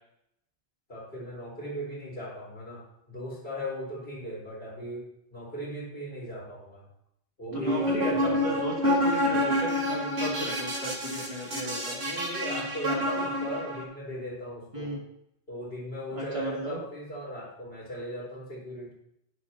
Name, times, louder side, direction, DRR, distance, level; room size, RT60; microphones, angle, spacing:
voice 1, 0.9-6.8 7.4-8.4 12.0-15.0 15.5-18.9, equal, 65° left, -5 dB, 4.6 m, -38 dB
voice 2, 7.5-12.0 14.7-15.0 16.1-16.8, right 1 dB, 30° right, -4 dB, 2.6 m, -34 dB
sound 1, 7.5-13.8, left 1 dB, 80° right, 2.4 m, -28 dB
11.0 x 11.0 x 2.9 m, 0.76 s
omnidirectional pair, 1.1 m